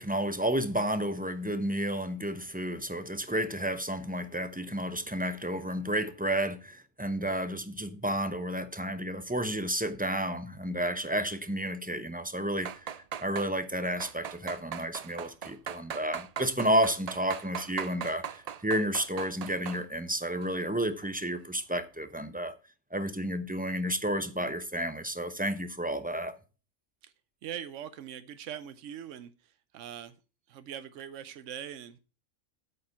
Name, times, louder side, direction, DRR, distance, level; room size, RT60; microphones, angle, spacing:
voice 1, 0.0-12.9 13.2-22.5 22.9-26.3, right 1 dB, 10° right, 0.6 m, -31 dB
sound 1, 12.6-13.5 14.0-19.8 20.2-20.6 21.0-21.1, right 8 dB, 55° right, 0.4 m, -39 dB
voice 2, 27.4-30.2 30.5-32.0, right 9 dB, 90° right, 1.0 m, -42 dB
8.7 x 6.9 x 5.3 m
omnidirectional pair, 1.2 m